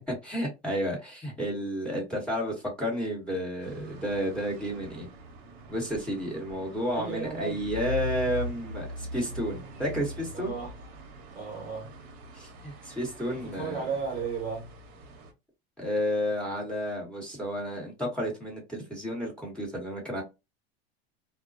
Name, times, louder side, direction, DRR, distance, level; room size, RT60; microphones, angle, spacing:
voice 1, 0.1-5.1 5.7-10.5 12.3-13.8 15.8-20.2, equal, 5° left, 1.2 m, -31 dB
sound 1, 3.6-15.3, equal, 50° right, 0.9 m, -41 dB
voice 2, 6.9-7.7 10.3-10.9 11.3-12.0 13.3-14.7, right 5 dB, 25° right, 1.0 m, -35 dB
2.2 x 2.2 x 2.5 m
supercardioid pair, 120°, 30 cm